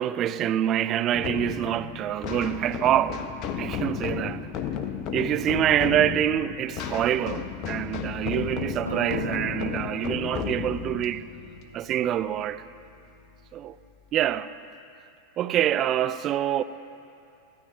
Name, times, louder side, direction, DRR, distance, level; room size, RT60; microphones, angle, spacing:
voice 1, 0.0-3.3 3.6-4.5 5.1-11.3 11.7-12.7 13.5-13.8 14.1-14.5 15.4-16.6, right 11 dB, 30° right, 0.4 m, -26 dB
sound 1, 1.1-12.5, left 8 dB, 40° left, 0.8 m, -33 dB
sound 2, 8.9-13.1, left 1 dB, 85° left, 0.8 m, -41 dB
23.5 x 16.0 x 2.8 m
figure-of-eight pair, 90°, 0 cm